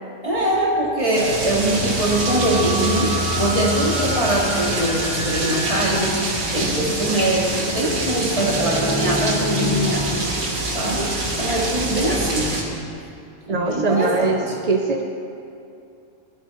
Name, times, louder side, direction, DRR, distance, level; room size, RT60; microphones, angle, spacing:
voice 1, 0.2-6.3 6.5-10.2 10.7-12.6 13.5-14.6, right 1 dB, 25° right, -4 dB, 2.2 m, -22 dB
sound 1, 1.2-12.6, right 1 dB, 85° right, 2.0 m, -25 dB
sound 2, 2.0-6.2 8.3-10.1, equal, 10° left, 0.7 m, -29 dB
voice 2, 13.5-15.1, right 3 dB, 45° right, 3 dB, 0.5 m, -22 dB
14.5 x 12.0 x 4.3 m, 2.6 s
omnidirectional pair, 1.4 m